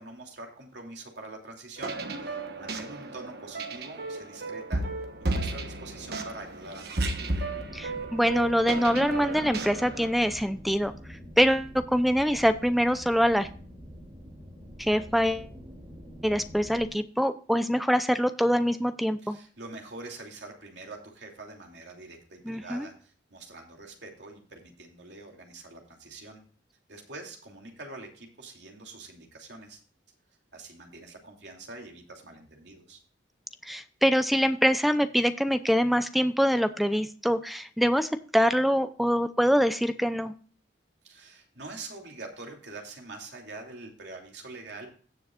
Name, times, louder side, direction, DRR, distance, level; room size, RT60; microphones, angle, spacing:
voice 1, 0.0-4.9 5.2-7.4 19.2-26.4 26.9-29.8 30.5-33.0 41.0-44.9, right 2 dB, 75° right, 1 dB, 2.9 m, -45 dB
sound 1, 1.8-10.1, right 2 dB, 60° right, 1.4 m, -33 dB
sound 2, 7.4-16.9, equal, 35° right, 4.2 m, -46 dB
voice 2, 7.7-10.9 11.4-13.5 14.8-15.5 16.2-19.4 22.5-22.9 33.6-40.3, equal, ahead, 11 dB, 0.5 m, -24 dB
17.0 x 7.0 x 2.4 m, 0.43 s
head